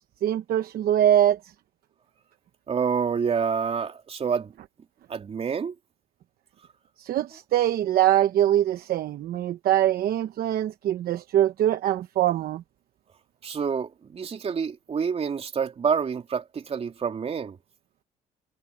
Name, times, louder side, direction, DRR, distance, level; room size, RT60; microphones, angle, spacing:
voice 1, 0.2-1.4 7.0-12.6, right 12 dB, 60° right, 1.0 m, -23 dB
voice 2, 2.7-4.5 5.1-5.7 13.4-17.6, right 6 dB, 35° right, 3.4 m, -28 dB
cardioid pair, 110°, 17 cm